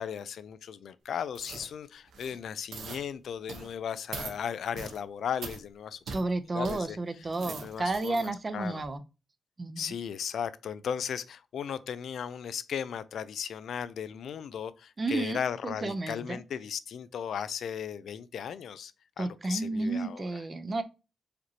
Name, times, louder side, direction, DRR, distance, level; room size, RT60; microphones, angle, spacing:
voice 1, 0.0-6.0 6.5-7.0 7.5-8.8 9.8-18.9 19.2-20.4, left 8 dB, 80° left, 0.3 m, -36 dB
sound 1, 1.3-1.7 2.1-2.4 2.7-3.0 3.5-3.7 4.1-4.4 4.7-5.0 5.4-5.6 6.1-6.2 6.6-6.8 7.2-8.3 8.7-8.9, right 4 dB, 90° right, 0.8 m, -41 dB
voice 2, 6.1-9.0 9.6-9.9 15.0-16.4 19.2-20.8, right 2 dB, 30° right, 0.5 m, -32 dB
5.0 x 3.0 x 2.7 m
cardioid pair, 105°, 0 cm